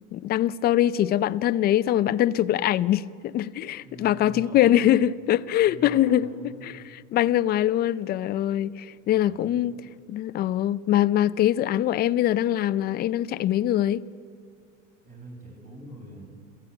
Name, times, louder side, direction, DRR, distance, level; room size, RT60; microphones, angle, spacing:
voice 1, 0.1-6.3 6.6-9.7 10.1-14.0, left 12 dB, 25° left, 0.5 m, -23 dB
voice 2, 3.8-4.9 5.6-6.7 9.0-9.7 15.0-16.2, right 1 dB, 20° right, 7.8 m, -44 dB
27.0 x 15.5 x 8.8 m
supercardioid pair, 130°, 36 cm